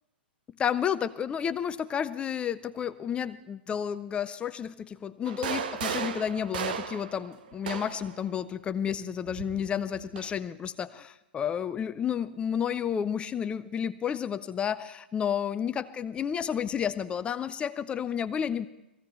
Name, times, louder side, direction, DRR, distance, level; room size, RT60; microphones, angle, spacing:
voice 1, 0.6-18.7, left 8 dB, 20° left, 14 dB, 0.5 m, -31 dB
sound 1, 5.2-8.1 9.3-10.3, right 7 dB, 60° right, 1.0 m, -35 dB
19.5 x 15.5 x 4.3 m, 0.89 s
figure-of-eight pair, 100°, 6 cm